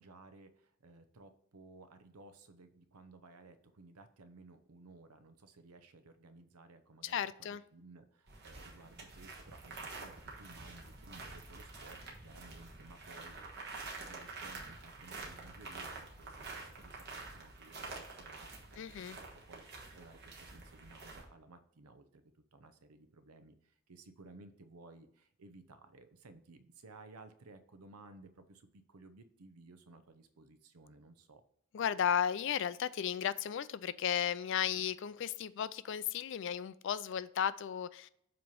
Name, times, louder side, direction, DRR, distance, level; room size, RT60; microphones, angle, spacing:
voice 1, 0.0-19.6 19.9-22.2 22.5-31.4, right 3 dB, 90° right, 10 dB, 0.7 m, -57 dB
voice 2, 7.0-7.6 18.8-19.2 31.7-38.1, left 8 dB, 55° left, 17 dB, 0.3 m, -34 dB
sound 1, 8.3-21.2, right 3 dB, 50° right, 1.3 m, -48 dB
7.6 x 3.0 x 5.3 m, 0.69 s
head